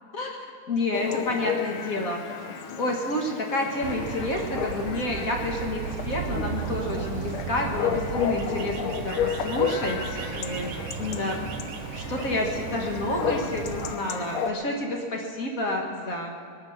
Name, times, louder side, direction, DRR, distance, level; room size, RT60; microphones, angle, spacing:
voice 1, 0.1-2.2 2.8-11.4 11.9-16.3, left 2 dB, 50° left, 1 dB, 1.0 m, -29 dB
Chatter / Bark / Livestock farm animals working animals, 0.9-14.5, left 7 dB, 80° left, 1.2 m, -32 dB
sound 1, 3.8-14.0, right 8 dB, 90° right, 1.3 m, -35 dB
22.0 x 9.2 x 6.4 m, 2.1 s
omnidirectional pair, 3.5 m